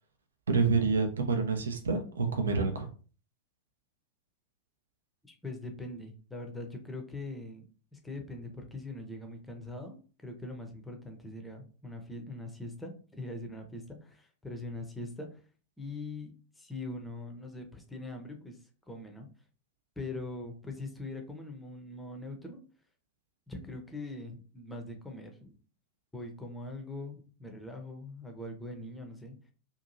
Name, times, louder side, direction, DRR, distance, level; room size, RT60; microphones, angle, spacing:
voice 1, 0.5-2.9, right 4 dB, 70° right, 5 dB, 0.5 m, -28 dB
voice 2, 5.2-7.6 7.9-15.4 15.8-19.3 20.0-22.6 23.5-25.5 26.1-29.4, left 2 dB, 5° left, 3 dB, 0.6 m, -42 dB
2.8 x 2.5 x 2.6 m, 0.38 s
figure-of-eight pair, 90°, 0 cm